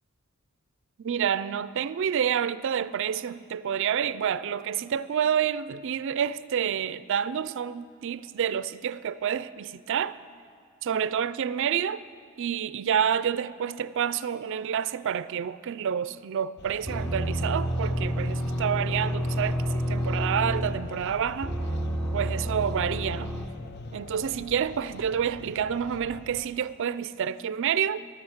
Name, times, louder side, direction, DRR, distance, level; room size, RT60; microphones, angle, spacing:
voice 1, 1.0-10.2 10.8-12.0 12.4-21.5 22.1-23.3 23.9-28.0, right 8 dB, 60° right, 0.4 m, -28 dB
sound 1, 16.6-26.5, left 4 dB, 50° left, 0.5 m, -43 dB
sound 2, 16.9-21.0 21.4-23.5, equal, 5° left, 0.8 m, -29 dB
14.5 x 11.5 x 7.3 m
head